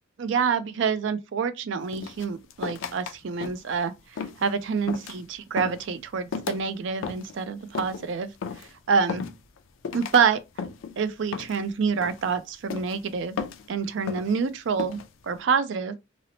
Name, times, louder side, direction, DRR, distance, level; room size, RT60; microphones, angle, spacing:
voice 1, 0.2-3.9 4.4-8.3 8.6-9.2 9.9-10.4 11.0-13.4 13.7-16.0, right 6 dB, 65° right, 0.4 m, -27 dB
sound 1, 1.9-3.1 3.4-3.8 4.2-4.5 4.9-5.2 5.6-5.9 6.3-6.6 7.0-7.4 7.8-8.1 8.4-8.7 9.1-9.6 9.8-10.2 10.6-11.0 11.3-11.7 12.0-12.3 12.7-13.0 13.4-13.7 14.1-14.4 14.8-15.1, left 6 dB, 70° left, 0.3 m, -34 dB
2.7 x 2.0 x 2.7 m
head